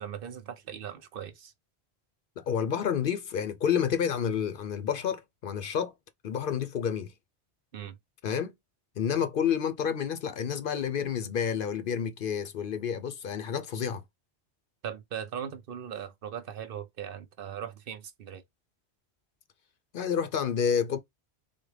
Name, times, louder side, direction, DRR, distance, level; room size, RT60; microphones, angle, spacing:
voice 1, 0.0-1.5 7.7-8.0 14.8-18.4, right 9 dB, 60° right, 0.7 m, -39 dB
voice 2, 2.4-5.9 6.2-7.1 8.2-8.5 9.0-14.0 19.9-21.0, left 8 dB, 60° left, 0.6 m, -29 dB
3.6 x 2.1 x 3.2 m
omnidirectional pair, 1.1 m